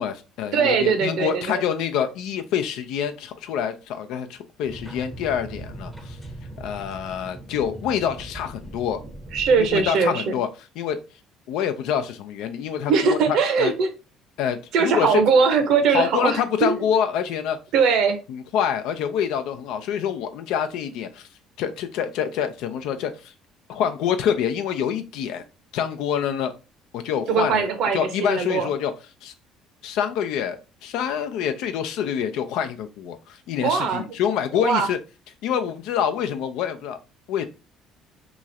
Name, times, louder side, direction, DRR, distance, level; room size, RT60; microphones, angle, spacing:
voice 1, 0.0-6.2 6.6-9.0 9.6-10.5 10.8-11.0 11.5-13.7 14.4-15.2 15.9-17.6 18.3-21.3 21.6-23.3 23.7-25.4 25.7-26.6 26.9-28.9 29.2-29.3 29.8-35.0 35.4-37.0 37.3-37.4, left 8 dB, 80° left, 0.5 m, -26 dB
voice 2, 0.5-1.6 9.3-10.2 12.9-13.9 14.7-16.8 17.7-18.2 27.3-28.7 33.6-34.2 34.6-34.9, right 5 dB, 70° right, 0.8 m, -21 dB
sound 1, 4.7-9.9, right 1 dB, ahead, 0.7 m, -39 dB
3.0 x 2.4 x 4.0 m
cardioid pair, 120°, 0 cm